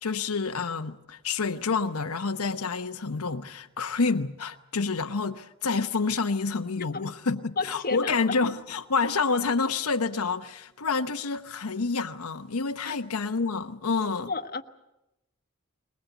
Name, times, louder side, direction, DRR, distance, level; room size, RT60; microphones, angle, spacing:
voice 1, 0.0-14.3, left 4 dB, 85° left, 0.9 m, -28 dB
voice 2, 7.6-8.1 12.8-12.9 14.3-14.6, left 3 dB, 40° left, 1.2 m, -31 dB
22.0 x 20.5 x 8.2 m
head